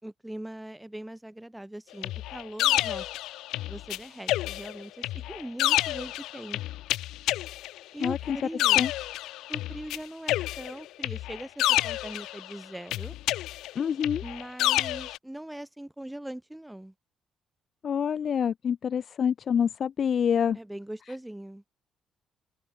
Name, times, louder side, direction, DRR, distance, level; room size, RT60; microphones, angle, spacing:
voice 1, 0.0-3.1 3.7-6.6 7.9-8.9 9.5-13.1 14.2-16.9 20.5-21.6, right 1 dB, 5° right, 3.4 m, -41 dB
sound 1, 2.0-4.0 4.3-10.0 10.3-12.5 12.9-15.2, left 15 dB, 90° left, 1.0 m, -29 dB
voice 2, 8.0-8.4 8.8-8.9 13.8-14.2 17.8-20.6, left 7 dB, 55° left, 0.4 m, -26 dB
open air
cardioid pair, 90°, 0 cm